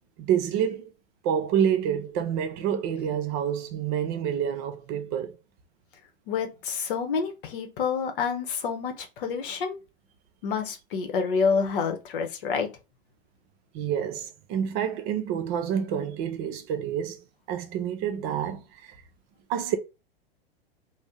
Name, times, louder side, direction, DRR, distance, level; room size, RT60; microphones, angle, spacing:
voice 1, 0.2-0.9 1.2-5.3 13.7-17.2 17.5-18.9 19.5-19.8, right 8 dB, 40° right, 0.5 m, -28 dB
voice 2, 6.3-9.8 10.4-12.7, left 5 dB, 60° left, 0.8 m, -28 dB
2.6 x 2.1 x 3.4 m
figure-of-eight pair, 95°, 30 cm